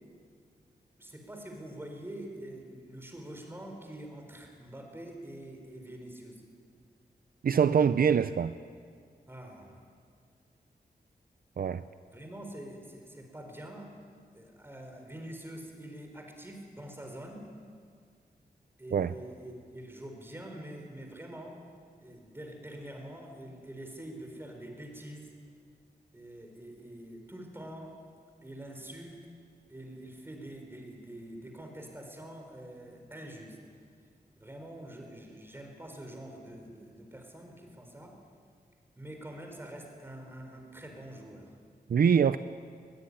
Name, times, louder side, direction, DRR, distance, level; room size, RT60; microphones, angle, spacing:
voice 1, 1.0-6.4 9.3-9.9 12.1-13.9 14.3-17.5 18.8-21.6 22.0-25.3 26.1-28.0 28.4-29.2 29.7-33.6 34.4-38.2 39.0-41.5, right 1 dB, 15° right, 3 dB, 4.4 m, -45 dB
voice 2, 7.4-8.5 11.6-11.8 18.9-19.1 41.9-42.4, right 7 dB, 65° right, 12 dB, 0.6 m, -24 dB
21.5 x 21.5 x 10.0 m, 2.1 s
wide cardioid pair, 160°, 16 cm